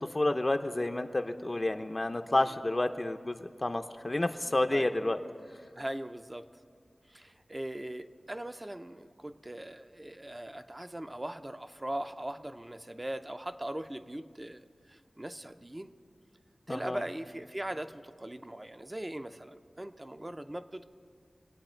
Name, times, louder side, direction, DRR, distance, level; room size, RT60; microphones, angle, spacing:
voice 1, 0.1-5.2 16.7-17.0, left 2 dB, 35° left, 6 dB, 0.6 m, -30 dB
voice 2, 5.8-6.5 7.1-15.9 16.7-20.8, right 1 dB, 25° right, 9 dB, 0.6 m, -40 dB
24.5 x 8.8 x 4.4 m, 2.2 s
wide cardioid pair, 65°, 0 cm